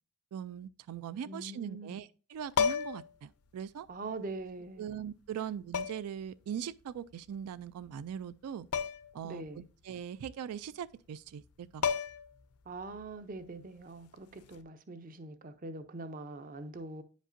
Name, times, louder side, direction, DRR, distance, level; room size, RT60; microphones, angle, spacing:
voice 1, 0.3-3.9 4.8-8.7 9.1-11.9, right 8 dB, 90° right, 0.3 m, -41 dB
voice 2, 1.3-2.0 3.9-5.0 9.2-9.7 12.7-17.0, right 3 dB, 40° right, 0.5 m, -43 dB
sound 1, 2.5-3.1 4.4-4.5 5.7-6.2 8.7-9.2 9.5-9.6 11.4-11.5 11.8-12.4 14.4-14.6, left 6 dB, 90° left, 0.6 m, -32 dB
9.7 x 5.2 x 2.5 m
head